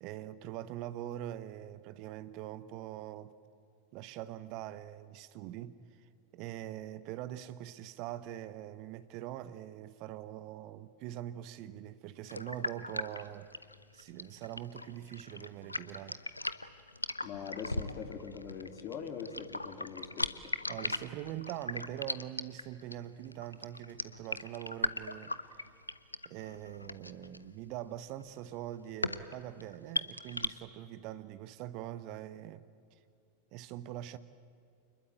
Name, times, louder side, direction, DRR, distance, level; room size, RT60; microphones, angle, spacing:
voice 1, 0.0-3.3 3.9-13.5 13.9-16.2 20.7-25.7 26.2-32.6 32.9-33.0 33.5-34.2, right 13 dB, 40° right, 0.9 m, -43 dB
sound 1, 12.3-30.5, left 2 dB, 85° left, 0.8 m, -39 dB
voice 2, 17.2-20.4, left 6 dB, 35° left, 3.3 m, -42 dB
28.5 x 21.0 x 9.0 m
figure-of-eight pair, 90°, 0 cm